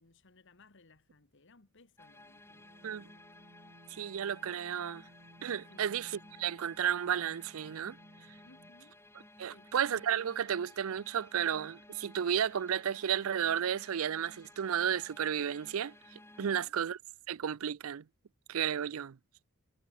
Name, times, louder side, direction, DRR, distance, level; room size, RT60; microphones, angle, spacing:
voice 1, 0.0-2.7 5.7-5.9 8.4-9.0 9.4-9.7 16.4-16.8, left 3 dB, 55° left, 1.6 m, -62 dB
sound 1, 2.0-16.7, left 1 dB, 10° left, 4.6 m, -57 dB
sound 2, 2.1-8.9, right 1 dB, 55° right, 6.2 m, -60 dB
voice 2, 3.9-5.0 5.4-8.0 9.4-15.9 16.4-17.0 17.3-18.0 18.5-19.2, right 8 dB, 70° right, 0.4 m, -33 dB
head